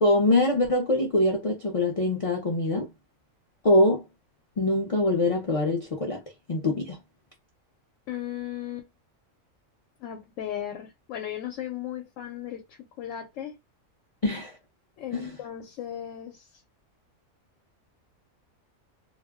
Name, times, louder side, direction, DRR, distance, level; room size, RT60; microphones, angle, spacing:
voice 1, 0.0-2.9 3.6-4.0 4.6-6.2 6.5-7.0 14.2-14.5 15.1-15.4, left 1 dB, 45° left, 0.4 m, -23 dB
voice 2, 8.1-8.9 10.0-12.6 13.0-13.6 15.0-16.5, left 11 dB, 80° left, 0.9 m, -36 dB
2.3 x 2.0 x 3.4 m
omnidirectional pair, 1.4 m